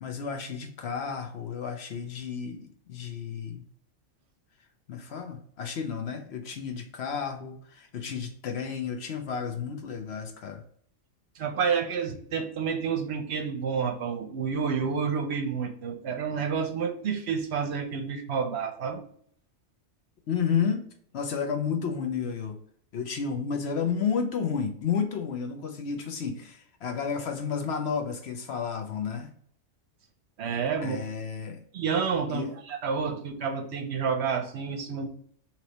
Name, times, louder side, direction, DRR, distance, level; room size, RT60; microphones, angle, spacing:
voice 1, 0.0-3.7 4.9-10.6 20.3-20.8 21.1-22.6 22.9-29.3 30.8-31.6 32.3-32.5, left 6 dB, 60° left, 4 dB, 0.9 m, -31 dB
voice 2, 11.4-19.0 30.4-31.0 31.7-35.1, right 6 dB, 65° right, 6 dB, 0.8 m, -29 dB
3.2 x 2.9 x 4.0 m, 0.62 s
omnidirectional pair, 1.3 m